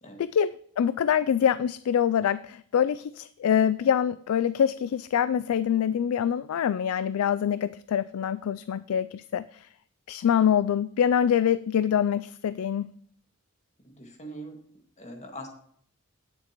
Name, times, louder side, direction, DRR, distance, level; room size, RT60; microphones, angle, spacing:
voice 1, 0.2-9.7 10.1-12.9, left 8 dB, 75° left, 15 dB, 0.3 m, -25 dB
voice 2, 13.8-14.6 15.0-15.5, right 1 dB, 35° left, 2 dB, 2.0 m, -42 dB
18.0 x 6.8 x 3.0 m, 0.62 s
head